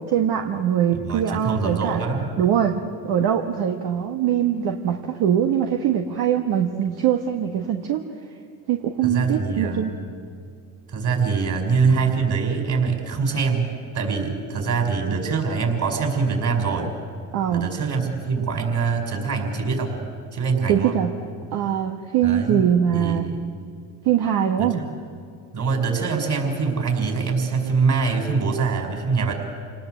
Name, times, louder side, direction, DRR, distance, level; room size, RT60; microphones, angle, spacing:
voice 1, 0.1-2.0 2.4-8.0 8.7-9.9 17.3-17.7 20.7-21.1 21.5-23.3 24.0-24.8, right 9 dB, 70° right, 3 dB, 1.6 m, -22 dB
voice 2, 1.0-2.3 9.0-9.9 10.9-13.7 13.9-16.9 17.5-20.0 20.3-21.0 22.2-22.6 22.9-23.3 24.6-24.7 25.5-29.3, right 5 dB, 45° right, 4 dB, 5.9 m, -24 dB
27.5 x 19.0 x 8.1 m, 2.3 s
supercardioid pair, 75°, 41 cm